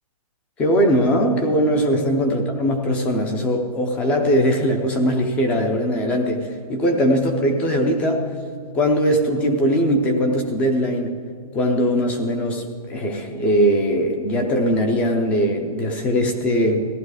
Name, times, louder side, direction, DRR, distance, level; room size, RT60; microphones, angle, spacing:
voice 1, 0.6-8.3 8.7-11.2 11.5-16.9, equal, 5° left, 5 dB, 0.4 m, -20 dB
15.0 x 11.5 x 4.7 m, 2.3 s
hypercardioid pair, 170°, 19 cm